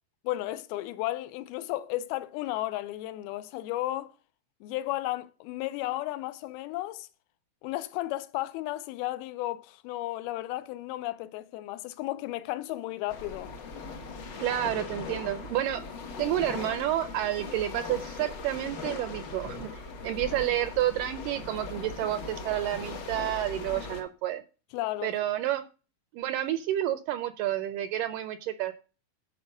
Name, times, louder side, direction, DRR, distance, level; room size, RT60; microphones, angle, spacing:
voice 1, 0.2-4.1 4.6-7.1 7.6-13.5 24.7-25.1, left 16 dB, 90° left, 2.5 m, -34 dB
sound 1, 13.1-24.0, left 4 dB, 65° left, 1.1 m, -39 dB
voice 2, 14.4-15.8 16.2-24.4 25.0-25.6 26.1-28.7, right 12 dB, 80° right, 2.0 m, -30 dB
10.5 x 4.6 x 6.2 m
omnidirectional pair, 4.3 m